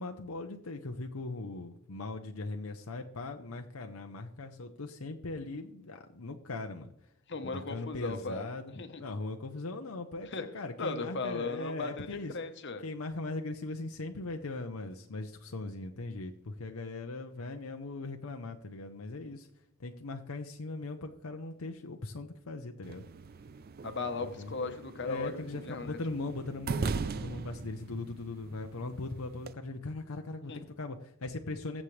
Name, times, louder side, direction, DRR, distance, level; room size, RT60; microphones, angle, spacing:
voice 1, 0.0-6.9 7.4-8.7 9.0-12.3 12.8-19.5 19.8-23.1 24.2-24.5 25.0-31.8, left 2 dB, 75° left, 4 dB, 0.8 m, -39 dB
voice 2, 7.3-9.0 10.3-10.5 10.8-12.8 23.8-26.0 30.5-30.6, left 3 dB, 55° left, 8 dB, 1.1 m, -37 dB
sound 1, 22.8-29.5, right 4 dB, 45° right, 0.4 m, -40 dB
22.0 x 7.4 x 3.3 m, 0.77 s
head